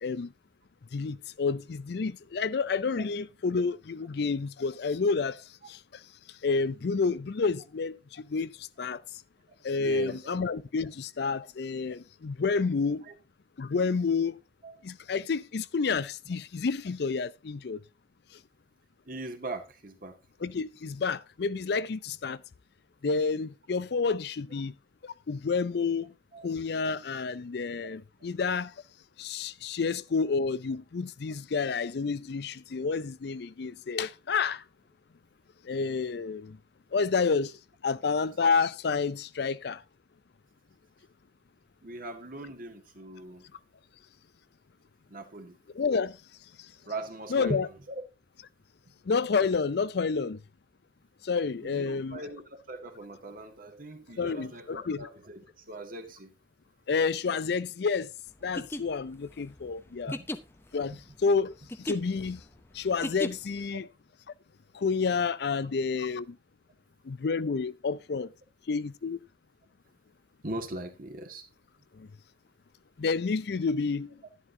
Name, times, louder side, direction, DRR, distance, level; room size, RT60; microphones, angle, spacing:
voice 1, 0.0-0.3 0.9-5.4 5.7-5.8 6.4-9.0 9.6-13.0 13.6-14.4 14.8-17.8 20.4-22.4 23.0-24.7 25.0-26.1 26.4-28.7 29.2-34.6 35.6-36.6 36.9-37.6 37.8-39.8 45.7-46.2 47.3-47.7 49.1-50.4 51.2-52.2 54.2-55.1 56.9-58.1 58.4-60.2 60.7-62.4 62.7-63.8 64.7-66.4 67.0-68.3 68.7-69.2 72.0-72.1 73.0-74.1, left 4 dB, 65° left, 0.5 m, -29 dB
voice 2, 9.8-10.3 13.1-13.2 14.6-14.8 19.1-20.2 26.3-26.5 41.8-43.5 45.1-45.6 46.9-48.0 51.6-56.3 60.1-60.3 60.9-61.0 63.7-63.8 70.4-71.4, right 2 dB, 50° right, 1.8 m, -40 dB
sound 1, 58.4-63.7, left 1 dB, 15° left, 0.6 m, -38 dB
11.0 x 11.0 x 2.8 m
head